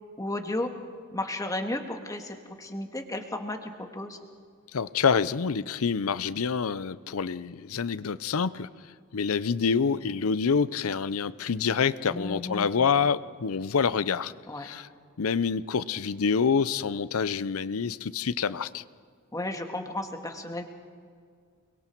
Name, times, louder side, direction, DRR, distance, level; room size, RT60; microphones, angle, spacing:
voice 1, 0.2-0.7 1.1-4.2 12.1-12.7 14.5-14.7 19.3-20.6, left 1 dB, 15° left, 4 dB, 1.7 m, -33 dB
voice 2, 4.7-8.7 9.1-14.9 15.2-18.8, left 6 dB, 70° left, 16 dB, 0.6 m, -27 dB
29.0 x 21.5 x 4.6 m, 2.1 s
head